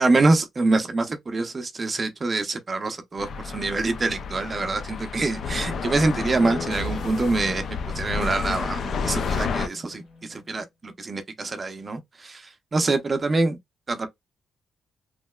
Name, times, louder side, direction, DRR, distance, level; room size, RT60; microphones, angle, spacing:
voice 1, 0.0-12.4 12.7-13.6 13.9-14.1, right 3 dB, 30° right, 0.6 m, -25 dB
sound 1, 3.2-9.7, left 5 dB, 60° left, 0.4 m, -30 dB
sound 2, 6.4-10.5, left 4 dB, 40° left, 1.2 m, -41 dB
sound 3, 6.7-10.0, right 1 dB, 85° left, 1.6 m, -40 dB
3.0 x 2.7 x 2.2 m
cardioid pair, 105°, 0 cm